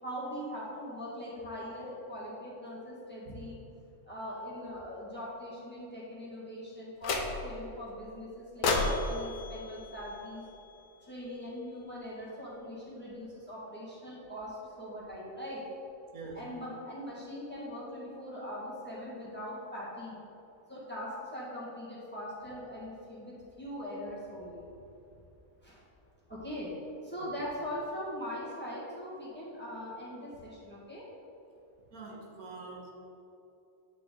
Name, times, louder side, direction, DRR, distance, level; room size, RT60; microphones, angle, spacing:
voice 1, 0.0-3.6 4.0-10.4 11.0-15.6 16.3-20.2 20.7-24.7 25.6-25.8 26.3-26.7 27.0-31.0, equal, 10° left, -7 dB, 1.4 m, -41 dB
sound 1, 7.0-7.7 8.6-10.9, left 3 dB, 75° left, 1.1 m, -33 dB
voice 2, 31.9-32.9, right 3 dB, 85° right, -2 dB, 1.5 m, -44 dB
9.0 x 4.0 x 3.7 m, 2.9 s
omnidirectional pair, 1.5 m